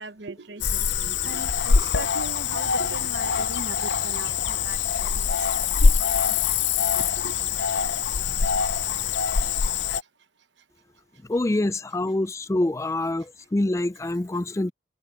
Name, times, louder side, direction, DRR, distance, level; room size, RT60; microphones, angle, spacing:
voice 1, 0.0-5.9 6.6-7.4 8.2-8.5, right 3 dB, 70° right, 1.1 m, -40 dB
Cricket / Frog, 0.6-10.0, left 6 dB, 70° left, 0.6 m, -24 dB
voice 2, 11.3-14.7, left 1 dB, 15° left, 0.4 m, -25 dB
head